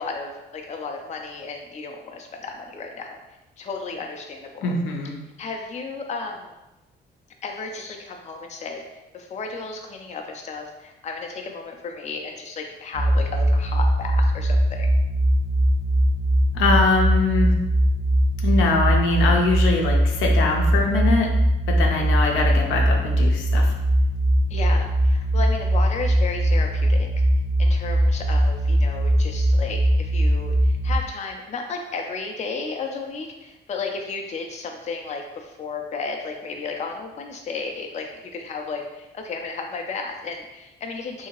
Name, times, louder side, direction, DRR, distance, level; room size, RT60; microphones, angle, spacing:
voice 1, 0.0-3.2 3.6-4.7 5.4-6.5 7.4-14.9 21.9-22.1 24.5-27.1 27.6-41.3, left 4 dB, 35° left, 3 dB, 0.4 m, -33 dB
voice 2, 4.6-5.1 16.5-17.5 18.4-21.3 21.7-23.7, left 3 dB, 85° left, 0 dB, 0.6 m, -22 dB
sound 1, 12.9-31.0, right 1 dB, 65° right, 0.7 m, -20 dB
2.8 x 2.7 x 2.9 m, 0.97 s
cardioid pair, 90°, 20 cm